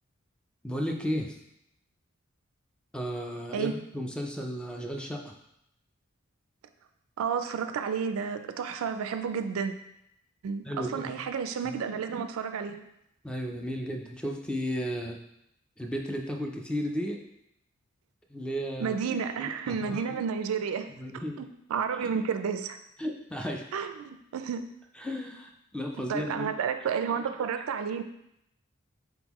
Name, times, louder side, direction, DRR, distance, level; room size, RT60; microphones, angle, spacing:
voice 1, 0.6-1.4 2.9-5.3 10.6-11.2 11.6-11.8 13.2-15.2 15.8-17.2 18.3-19.0 19.4-20.1 20.9-21.4 23.0-23.6 25.0-26.5, equal, 5° left, 2 dB, 0.3 m, -34 dB
voice 2, 7.2-9.7 10.4-12.8 18.8-20.9 21.4-22.8 23.7-24.7 26.1-28.0, right 6 dB, 85° right, 9 dB, 0.3 m, -31 dB
3.9 x 3.6 x 3.0 m, 0.79 s
head